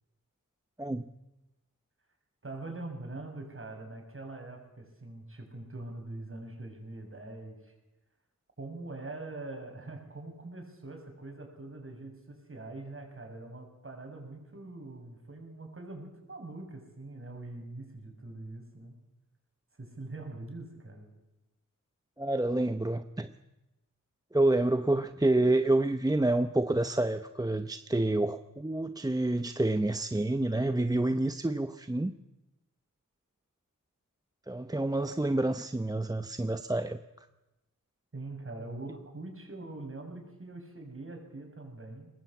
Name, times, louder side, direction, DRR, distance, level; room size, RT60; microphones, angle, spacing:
voice 1, 0.8-1.1 22.2-23.3 24.3-32.1 34.5-37.0, right 2 dB, 10° right, 9 dB, 0.8 m, -28 dB
voice 2, 2.4-7.7 8.6-19.0 19.8-21.1 38.1-42.1, right 2 dB, 40° right, 3 dB, 6.6 m, -43 dB
22.5 x 20.0 x 8.5 m, 0.98 s
wide cardioid pair, 85°, 32 cm